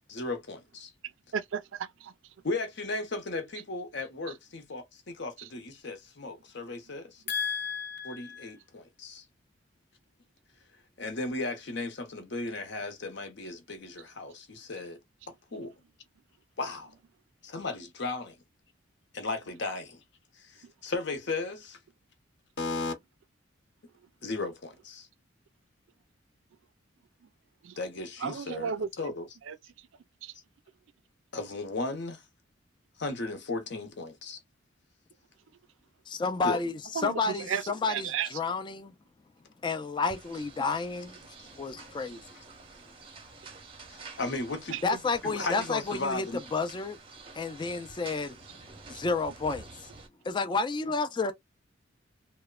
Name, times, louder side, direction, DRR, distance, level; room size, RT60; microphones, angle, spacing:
voice 1, 0.1-0.9 2.4-9.2 11.0-15.0 15.5-15.7 16.6-16.9 17.4-18.4 19.1-20.0 20.4-21.8 22.6-22.9 24.2-25.1 27.8-29.3 31.3-32.2 33.0-34.4 36.4-36.6 43.9-44.8 45.2-46.4, left 3 dB, 60° left, 0.8 m, -35 dB
voice 2, 1.3-2.1 5.4-5.5 20.6-20.7 27.6-27.8 28.2-29.1 29.5-29.6 30.2-30.3 36.9-37.6 37.9-38.3 44.7-45.0, right 7 dB, 75° right, 0.4 m, -34 dB
voice 3, 36.1-38.9 39.6-41.2 41.5-42.2 44.8-46.3 46.5-47.0 47.3-48.4 48.9-49.9 50.2-51.3, left 4 dB, 25° left, 0.3 m, -31 dB
sound 1, 40.0-50.1, right 4 dB, 25° right, 0.6 m, -49 dB
3.0 x 2.1 x 2.3 m
head